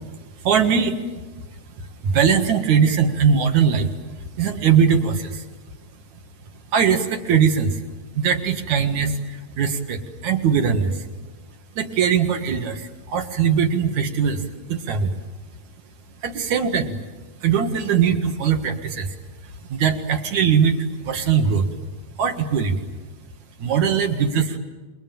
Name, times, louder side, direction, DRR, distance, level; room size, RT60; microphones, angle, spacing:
voice 1, 0.4-1.0 2.0-3.9 4.4-5.4 6.7-7.8 8.2-9.2 9.6-11.0 11.8-14.4 14.7-15.2 16.2-16.9 17.4-19.1 19.7-20.8 21.0-21.7 22.2-22.8 23.6-24.6, right 7 dB, 70° right, 5 dB, 3.0 m, -20 dB
27.5 x 22.0 x 9.2 m, 1.3 s
omnidirectional pair, 3.4 m